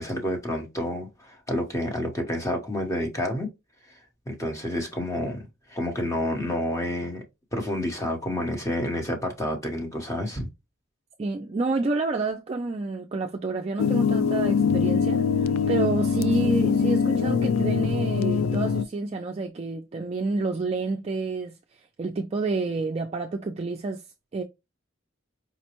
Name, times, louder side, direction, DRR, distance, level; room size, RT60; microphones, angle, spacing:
voice 1, 0.0-3.5 4.3-7.2 7.5-10.5, left 1 dB, 15° left, 0.9 m, -29 dB
voice 2, 11.2-21.6 22.0-24.0 24.3-24.4, right 3 dB, 30° right, 0.3 m, -29 dB
sound 1, 13.8-18.8, left 6 dB, 85° left, 0.3 m, -23 dB
4.9 x 2.1 x 2.9 m
head